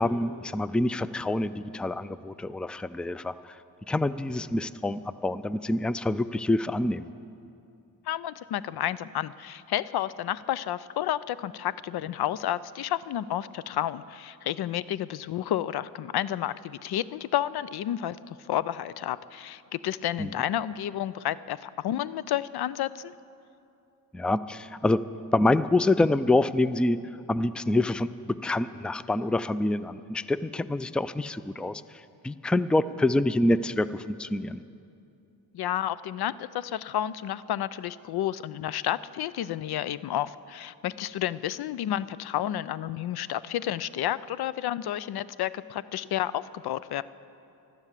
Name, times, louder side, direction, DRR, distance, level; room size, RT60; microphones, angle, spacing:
voice 1, 0.0-3.6 3.9-7.1 20.2-20.3 24.1-25.0 25.3-27.0 27.3-31.8 32.2-34.6, left 2 dB, 5° left, 15 dB, 0.4 m, -26 dB
voice 2, 8.1-23.1 35.5-47.0, left 12 dB, 85° left, 17 dB, 0.5 m, -31 dB
15.5 x 12.0 x 7.4 m, 2.6 s
cardioid pair, 70°, 37 cm